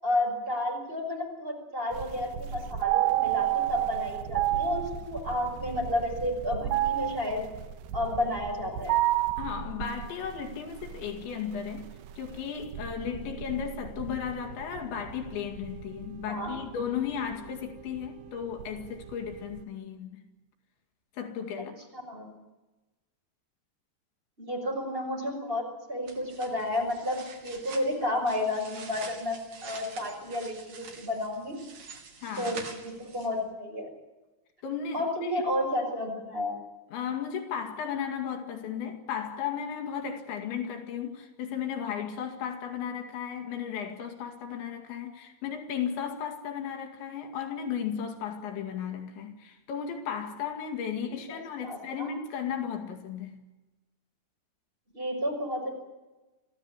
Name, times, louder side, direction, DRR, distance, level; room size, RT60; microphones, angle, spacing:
voice 1, 0.0-7.4 7.9-9.0 13.2-13.4 16.3-16.5 21.9-22.3 24.4-31.6 32.4-33.9 34.9-36.6 51.3-52.1 54.9-55.7, left 1 dB, 10° right, 6.0 m, -31 dB
sound 1, 1.9-19.6, right 14 dB, 75° right, 3.0 m, -32 dB
voice 2, 9.4-20.2 21.2-21.8 32.2-32.5 34.6-35.3 36.9-53.4, left 7 dB, 75° left, 4.5 m, -35 dB
sound 2, 26.1-33.5, right 5 dB, 50° right, 4.5 m, -46 dB
26.5 x 16.0 x 8.9 m
omnidirectional pair, 5.3 m